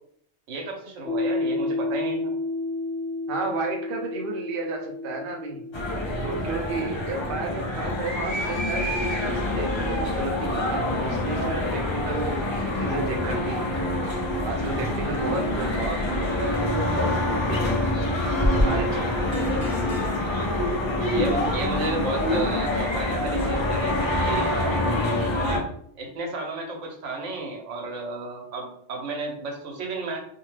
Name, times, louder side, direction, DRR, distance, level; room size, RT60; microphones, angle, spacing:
voice 1, 0.5-2.3 20.9-24.5 25.3-30.2, right 2 dB, 85° right, 1 dB, 1.1 m, -32 dB
Piano, 1.1-8.3, left 2 dB, 65° left, 0.8 m, -32 dB
voice 2, 3.3-5.6 6.2-13.7 14.4-18.0 18.6-19.1, right 3 dB, 55° right, 1 dB, 0.7 m, -33 dB
sound 1, 5.7-25.6, left 1 dB, 45° left, 0.3 m, -26 dB
2.6 x 2.2 x 3.1 m, 0.66 s
omnidirectional pair, 1.2 m